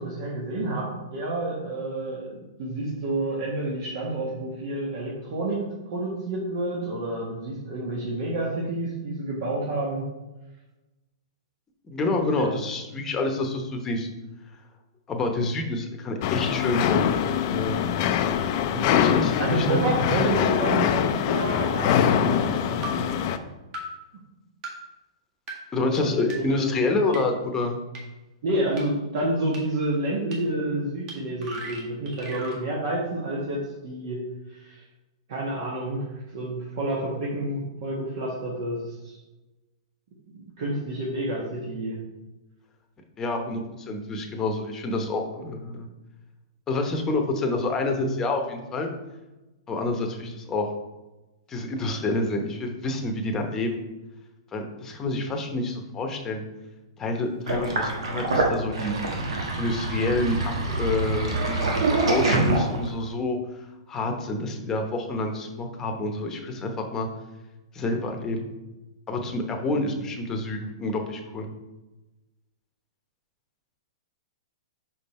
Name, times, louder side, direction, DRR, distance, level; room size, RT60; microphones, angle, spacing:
voice 1, 0.0-10.1 12.3-12.5 18.7-19.0 19.4-23.2 25.8-26.7 27.1-27.2 28.4-34.8 35.3-39.2 40.3-42.0 69.8-69.9, right 1 dB, 60° right, -4 dB, 1.5 m, -29 dB
voice 2, 11.9-14.1 15.1-17.0 17.5-18.0 18.9-19.8 25.7-27.8 43.2-45.9 46.7-48.9 49.7-50.7 51.5-53.8 54.5-56.4 57.0-59.2 59.6-63.4 63.9-67.1 67.7-68.5 69.1-71.5, left 2 dB, 20° left, 3 dB, 1.0 m, -28 dB
sound 1, 16.2-23.4, left 9 dB, 45° left, 0.5 m, -23 dB
sound 2, 20.9-21.0 21.9-22.0 22.8-22.9 23.7-23.8 24.6-24.7 25.5-25.6 26.3-26.4 27.1-27.2 27.9-28.0 28.8-28.9 29.5-29.6 30.3-30.4 31.1-31.2 31.4-32.6, right 2 dB, 35° right, 1.8 m, -36 dB
Sink (filling or washing), 57.5-63.0, right 2 dB, 80° right, 1.5 m, -25 dB
5.3 x 5.2 x 4.3 m, 1.1 s
hypercardioid pair, 140°, 3 cm